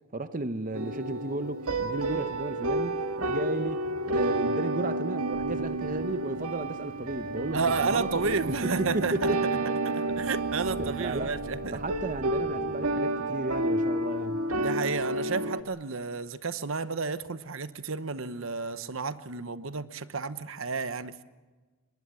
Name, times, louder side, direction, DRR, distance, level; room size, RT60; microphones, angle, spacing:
voice 1, 0.1-9.6 9.9-10.2 10.8-11.3 11.7-14.4, right 2 dB, 35° right, 0.8 m, -34 dB
sound 1, 0.7-15.6, right 2 dB, 85° right, 1.7 m, -30 dB
sound 2, 3.8-13.8, equal, 65° left, 7.6 m, -50 dB
sound 3, 5.3-12.1, equal, 20° right, 7.5 m, -49 dB
voice 2, 7.5-9.3 9.8-11.8 14.5-21.2, right 4 dB, 65° right, 1.0 m, -31 dB
24.0 x 21.5 x 7.6 m
head